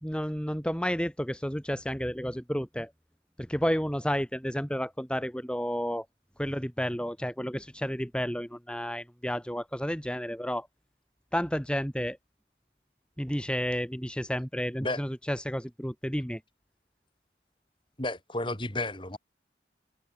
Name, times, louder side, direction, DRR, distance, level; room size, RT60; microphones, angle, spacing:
voice 1, 0.0-2.9 3.5-6.0 6.4-10.7 11.3-12.2 13.2-16.4, equal, 5° left, 3.3 m, -31 dB
voice 2, 18.0-19.2, left 2 dB, 30° left, 5.0 m, -32 dB
head